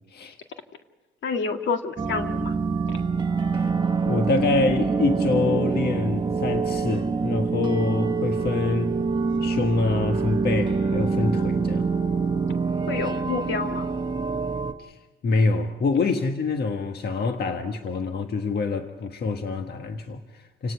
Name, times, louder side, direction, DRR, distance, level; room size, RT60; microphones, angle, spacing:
voice 1, 1.2-2.5 12.9-13.9, left 4 dB, 70° left, 5 dB, 1.9 m, -28 dB
sound 1, 2.0-14.7, right 4 dB, 20° right, 1.1 m, -25 dB
voice 2, 4.0-9.0 9.4-11.9 14.8-20.7, left 3 dB, 55° left, 5 dB, 1.5 m, -26 dB
29.5 x 18.0 x 5.7 m, 1.2 s
cardioid pair, 90°, 20 cm